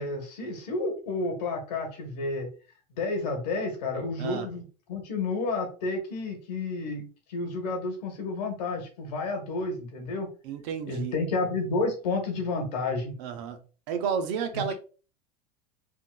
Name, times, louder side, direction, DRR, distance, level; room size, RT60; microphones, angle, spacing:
voice 1, 0.0-2.5 2.9-10.3 10.9-13.2 14.5-14.7, left 3 dB, 80° left, 1.4 m, -31 dB
voice 2, 10.4-11.1 13.2-13.6 13.9-14.7, right 7 dB, 65° right, 0.8 m, -31 dB
3.7 x 2.7 x 2.3 m
hypercardioid pair, 100°, 21 cm